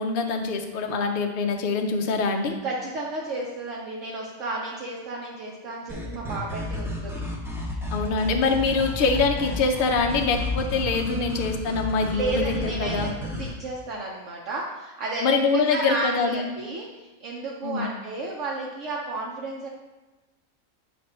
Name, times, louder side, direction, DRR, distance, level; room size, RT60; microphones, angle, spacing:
voice 1, 0.0-2.6 7.9-13.1 15.2-16.5 17.6-17.9, left 4 dB, 55° left, 3 dB, 0.7 m, -24 dB
voice 2, 2.6-7.2 12.1-19.7, right 2 dB, 65° right, -3 dB, 1.0 m, -32 dB
sound 1, 5.9-13.5, left 2 dB, 5° right, 0.5 m, -32 dB
7.6 x 2.6 x 5.3 m, 1.2 s
omnidirectional pair, 1.5 m